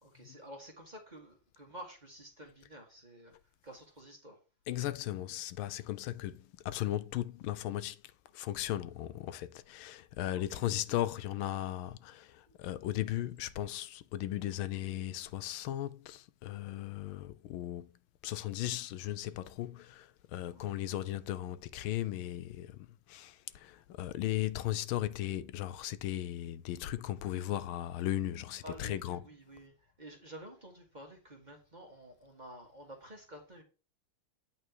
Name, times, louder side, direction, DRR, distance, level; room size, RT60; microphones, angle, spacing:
voice 1, 0.0-3.3 3.6-4.4 10.5-10.7 11.2-11.3 12.5-12.6 20.5-20.8 28.6-33.6, right 1 dB, 25° right, 1.6 m, -51 dB
voice 2, 4.7-8.0 8.3-17.9 18.2-29.2, left 13 dB, 80° left, 1.4 m, -37 dB
8.7 x 4.4 x 4.5 m
omnidirectional pair, 2.3 m